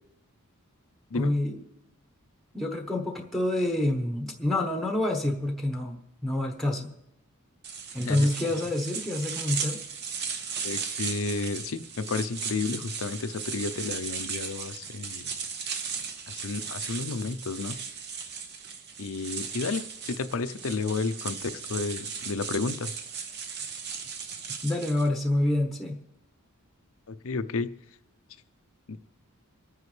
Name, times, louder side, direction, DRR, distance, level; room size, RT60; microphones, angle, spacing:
voice 1, 1.1-1.6 2.5-6.9 7.9-9.8 24.6-26.0, left 1 dB, ahead, 3 dB, 1.0 m, -27 dB
sound 1, 7.6-25.1, right 6 dB, 50° right, 1.0 m, -36 dB
voice 2, 8.0-8.3 10.6-15.3 16.3-17.8 19.0-22.9 27.1-27.7 28.9-29.0, left 4 dB, 65° left, 12 dB, 0.6 m, -32 dB
26.0 x 9.4 x 3.3 m, 0.86 s
head